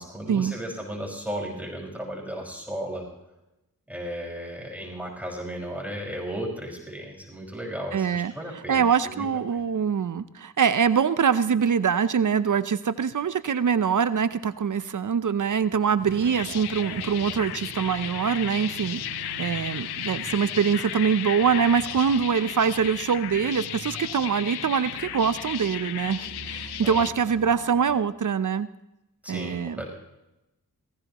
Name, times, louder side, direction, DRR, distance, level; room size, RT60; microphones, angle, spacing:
voice 1, 0.0-3.1 3.9-9.3 9.5-9.7 26.8-27.1 29.2-29.9, equal, 5° right, -2 dB, 5.5 m, -35 dB
voice 2, 7.9-8.3 8.7-19.0 19.4-28.7 29.3-29.8, right 7 dB, 55° right, 14 dB, 0.8 m, -24 dB
sound 1, 16.0-27.9, right 4 dB, 90° right, 2.9 m, -43 dB
sound 2, 16.1-27.1, left 12 dB, 90° left, 0.6 m, -35 dB
18.5 x 16.5 x 3.1 m, 0.92 s
cardioid pair, 40°, 37 cm